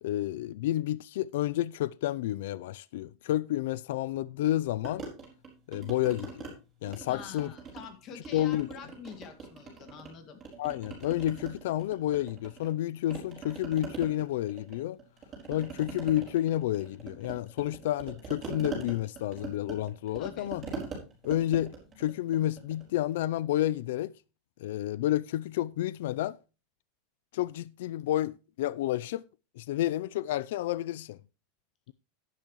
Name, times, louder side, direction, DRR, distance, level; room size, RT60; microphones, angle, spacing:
voice 1, 0.0-5.1 5.7-6.5 6.8-7.5 8.3-8.7 10.6-15.0 15.5-20.6 21.2-24.1 24.6-26.4 27.3-29.2 29.6-31.2, left 13 dB, 70° left, 0.4 m, -30 dB
sound 1, 4.8-6.5 6.9-7.9 8.2-10.1 10.4-12.8 13.1-22.9, right 4 dB, 20° right, 4.8 m, -42 dB
voice 2, 7.1-10.4 20.1-20.5, left 7 dB, 30° left, 2.1 m, -47 dB
12.0 x 10.5 x 3.0 m
supercardioid pair, 160°, 0 cm